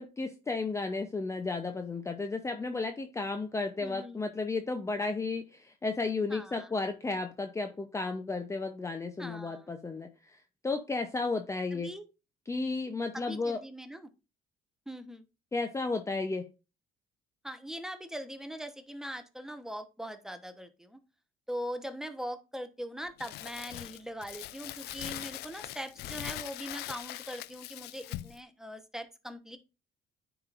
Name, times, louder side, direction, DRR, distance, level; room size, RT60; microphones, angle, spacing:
voice 1, 0.0-10.1 10.6-11.9 12.5-13.6 15.5-16.5, left 3 dB, 15° left, 0.6 m, -33 dB
voice 2, 3.8-4.2 6.3-6.7 9.2-9.7 11.7-12.0 13.1-14.1 14.9-15.2 17.4-21.0 21.5-29.6, equal, 5° right, 1.0 m, -41 dB
Crumpling crinkling, 23.2-28.4, left 15 dB, 75° left, 0.4 m, -41 dB
9.6 x 5.0 x 2.5 m
cardioid pair, 110°, 17 cm